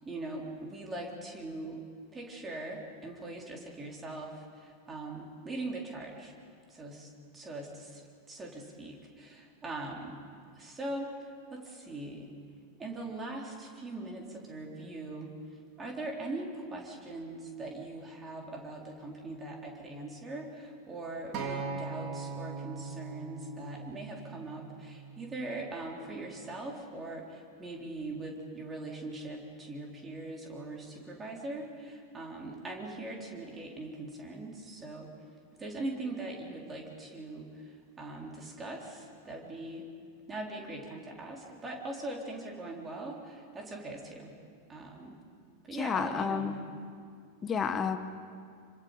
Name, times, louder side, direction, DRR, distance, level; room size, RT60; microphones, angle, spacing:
voice 1, 0.0-1.8 2.1-6.3 6.7-8.0 8.3-10.1 10.6-11.1 11.5-12.3 12.8-15.3 15.8-35.1 35.6-39.9 40.3-44.3 44.7-45.2 45.6-46.6, right 2 dB, 15° right, 0 dB, 4.0 m, -41 dB
Acoustic guitar, 21.3-25.6 26.4-26.5, right 4 dB, 40° right, 3.4 m, -40 dB
voice 2, 45.8-46.6 47.4-48.0, left 6 dB, 20° left, 9 dB, 1.5 m, -30 dB
27.0 x 25.5 x 5.2 m, 2.2 s
figure-of-eight pair, 90°, 0 cm